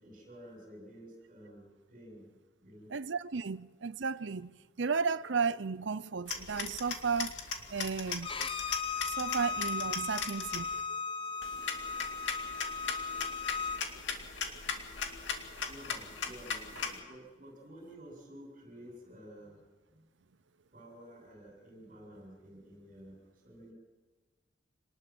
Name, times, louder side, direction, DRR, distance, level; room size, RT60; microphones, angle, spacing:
voice 1, 0.0-2.3 2.6-2.9 15.6-19.6 19.9-20.0 20.7-23.7, equal, 45° right, 7.7 m, -52 dB
voice 2, 2.9-7.4 7.7-8.3 9.0-11.4, right 5 dB, 65° right, 0.6 m, -34 dB
sound 1, 6.3-10.8 11.4-17.0, left 5 dB, 65° left, 2.4 m, -39 dB
Bowed string instrument, 8.2-13.8, left 5 dB, 25° left, 0.9 m, -37 dB
27.0 x 19.5 x 6.2 m
head